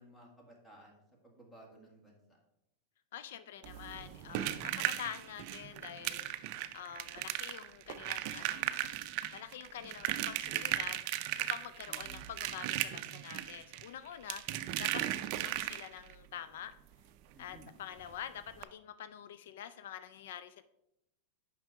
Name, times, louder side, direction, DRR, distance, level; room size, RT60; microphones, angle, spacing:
voice 1, 0.0-2.4 11.9-12.3 17.3-17.7, equal, 10° left, 0 dB, 1.9 m, -57 dB
voice 2, 3.1-8.7 9.3-11.0 11.4-16.7 17.4-20.6, left 10 dB, 75° left, 13 dB, 0.3 m, -46 dB
sound 1, 3.6-16.1 17.6-17.7 18.0-18.1 18.5-18.6, right 13 dB, 50° right, 0.5 m, -37 dB
6.1 x 5.5 x 4.7 m, 0.85 s
supercardioid pair, 130°, 0 cm